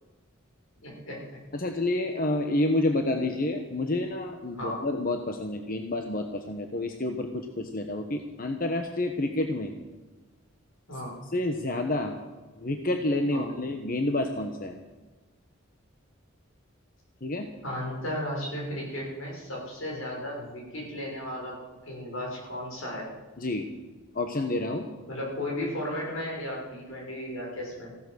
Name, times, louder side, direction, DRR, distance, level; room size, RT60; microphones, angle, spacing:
voice 1, 0.8-1.3 4.5-4.8 10.9-11.2 13.3-13.5 17.6-23.1 25.1-27.9, left 1 dB, 80° left, -2 dB, 6.2 m, -35 dB
voice 2, 1.5-9.7 11.3-12.1 12.6-14.8 17.2-17.5 23.4-23.7 24.1-24.9, left 2 dB, 45° left, 5 dB, 1.1 m, -29 dB
15.5 x 12.5 x 6.4 m, 1.3 s
head